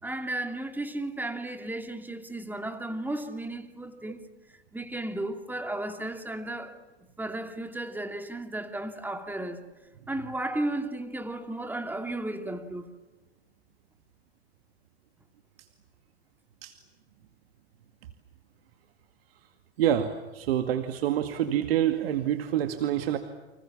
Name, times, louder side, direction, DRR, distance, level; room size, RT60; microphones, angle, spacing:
voice 1, 0.0-4.2 4.7-6.8 7.2-9.6 10.1-12.9, right 1 dB, 5° right, 2.6 m, -34 dB
voice 2, 19.8-23.2, right 10 dB, 60° right, 2.3 m, -27 dB
30.0 x 26.5 x 7.3 m
figure-of-eight pair, 95°, 33 cm